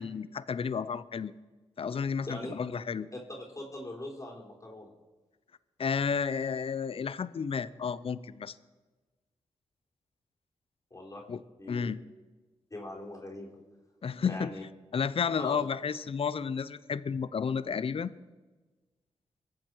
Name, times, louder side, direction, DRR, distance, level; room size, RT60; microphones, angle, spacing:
voice 1, 0.0-1.3 1.8-3.1 5.8-8.6 11.3-11.4 11.7-12.0 14.0-14.5 14.9-18.1, left 6 dB, 55° left, 17 dB, 0.7 m, -32 dB
voice 2, 2.2-2.6 3.3-4.9 10.9-11.2 11.6-11.9 12.7-13.6 14.3-14.6 15.4-15.7, left 1 dB, 30° left, -1 dB, 4.0 m, -41 dB
22.5 x 7.6 x 4.7 m, 1.2 s
supercardioid pair, 40°, 11 cm